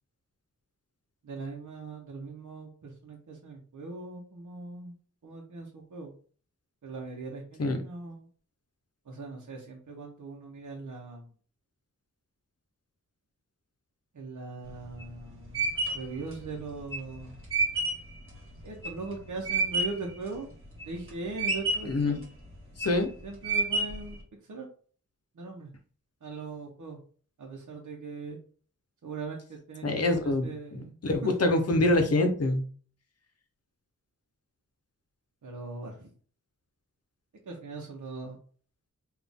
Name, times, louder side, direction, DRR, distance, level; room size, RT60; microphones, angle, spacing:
voice 1, 1.2-5.0 5.2-6.1 6.8-8.3 9.1-11.3 14.1-17.4 18.6-20.5 20.9-22.2 23.2-24.2 24.5-24.7 25.3-25.7 26.2-27.0 27.4-28.4 29.0-31.3 35.4-36.1 37.5-38.4, right 3 dB, 70° right, 0 dB, 0.9 m, -40 dB
sound 1, 14.7-20.1 20.5-21.1 21.4-22.0 22.5-23.0 23.4-24.1, right 3 dB, 45° right, 1.6 m, -29 dB
voice 2, 21.8-22.2 22.8-23.1 29.8-32.7, left 2 dB, 50° left, 6 dB, 0.8 m, -25 dB
4.0 x 2.5 x 3.5 m, 0.43 s
wide cardioid pair, 110°, 31 cm